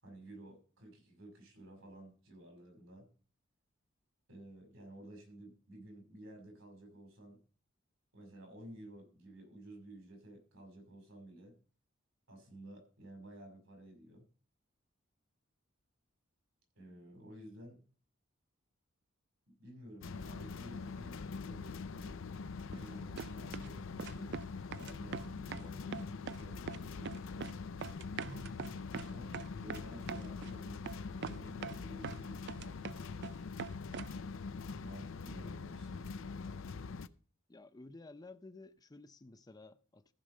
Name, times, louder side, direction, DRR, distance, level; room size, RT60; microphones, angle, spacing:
voice 1, 0.0-3.1 4.3-7.4 8.1-11.5 12.3-14.2 16.7-17.8 19.6-22.2 22.7-24.4 24.7-27.6 29.1-30.8 31.2-33.4 34.7-36.1, right 1 dB, 85° right, 5.9 m, -53 dB
sound 1, 20.0-37.1, left 4 dB, 70° left, 0.5 m, -44 dB
sound 2, 22.7-22.9 23.2-23.7 24.0-24.5 24.7-25.7 25.9-26.4 26.7-27.5 27.8-30.5 30.8-31.0 31.2-32.2 32.5-33.3 33.6-34.2, right 6 dB, 60° right, 0.4 m, -43 dB
voice 2, 37.5-40.1, left 2 dB, 20° left, 0.5 m, -53 dB
14.5 x 5.1 x 6.4 m
head